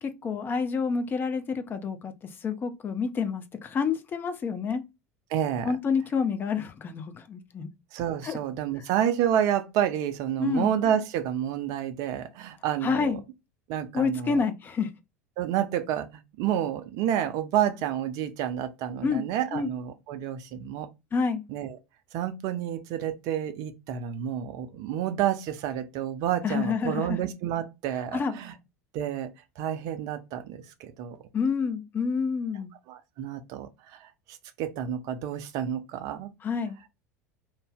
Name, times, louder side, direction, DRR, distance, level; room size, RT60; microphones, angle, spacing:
voice 1, 0.0-2.1 2.4-4.8 5.6-7.7 8.2-8.4 10.4-10.7 12.8-13.2 13.9-14.9 19.0-19.2 19.5-19.7 21.1-21.4 26.4-27.2 28.1-28.3 31.3-32.7 36.4-36.8, left 5 dB, 25° left, 0.5 m, -28 dB
voice 2, 5.3-5.7 7.9-13.2 13.7-14.4 15.4-20.9 21.5-21.8 22.1-28.5 28.9-29.3 29.6-31.2 32.9-36.3, right 10 dB, 45° right, 0.5 m, -29 dB
2.6 x 2.0 x 3.5 m
figure-of-eight pair, 75°, 8 cm